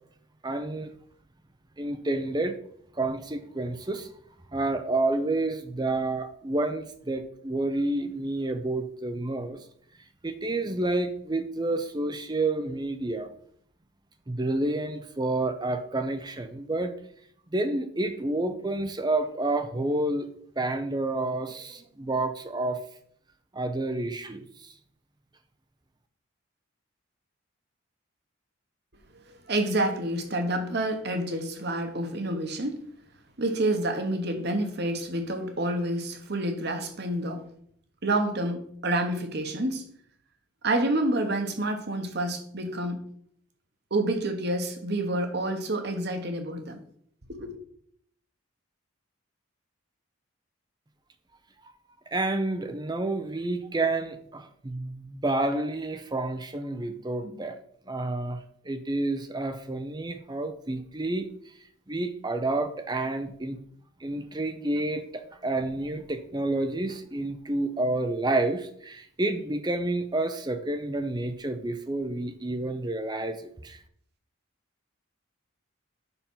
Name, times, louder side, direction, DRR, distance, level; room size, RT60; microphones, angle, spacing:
voice 1, 0.4-0.9 1.8-2.6 2.9-4.1 4.5-9.6 10.2-13.3 14.3-16.9 17.5-20.3 20.6-22.8 23.5-24.7 52.1-57.6 57.9-61.3 61.9-63.6 64.0-73.8, right 2 dB, 20° right, 0.5 m, -29 dB
voice 2, 29.2-32.8 33.4-37.4 38.0-39.9 40.6-43.0 43.9-46.8 47.3-47.6, right 1 dB, 50° right, 1.2 m, -28 dB
6.9 x 5.9 x 5.6 m
head